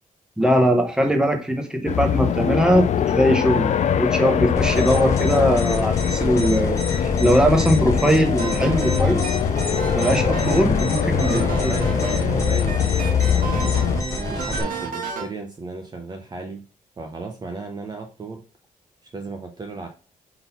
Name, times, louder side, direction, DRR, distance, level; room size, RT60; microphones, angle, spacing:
voice 1, 0.4-2.9 3.1-3.7 3.9-9.4 10.0-11.8, equal, 5° right, 4 dB, 1.1 m, -20 dB
sound 1, 1.9-14.0, left 9 dB, 55° left, 0.5 m, -23 dB
sound 2, 4.6-14.6, left 2 dB, 20° left, 1.7 m, -29 dB
sound 3, 8.4-15.3, right 3 dB, 90° right, 1.5 m, -31 dB
voice 2, 11.1-13.7 14.2-16.6 17.0-18.4 19.1-19.9, right 3 dB, 30° right, 3 dB, 0.7 m, -34 dB
4.3 x 3.9 x 5.6 m, 0.35 s
wide cardioid pair, 145°, 14 cm